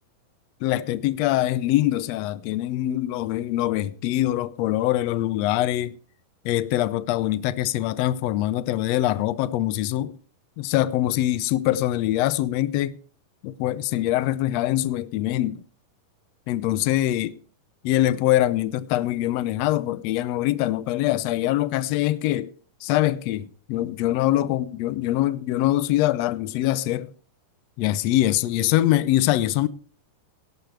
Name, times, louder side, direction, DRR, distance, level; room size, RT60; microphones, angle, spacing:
voice 1, 0.6-6.0 6.4-10.2 10.6-13.0 13.4-15.6 16.5-17.4 17.8-22.5 22.8-27.1 27.8-29.7, left 14 dB, 90° left, 1.4 m, -23 dB
18.0 x 11.5 x 3.2 m
omnidirectional pair, 3.8 m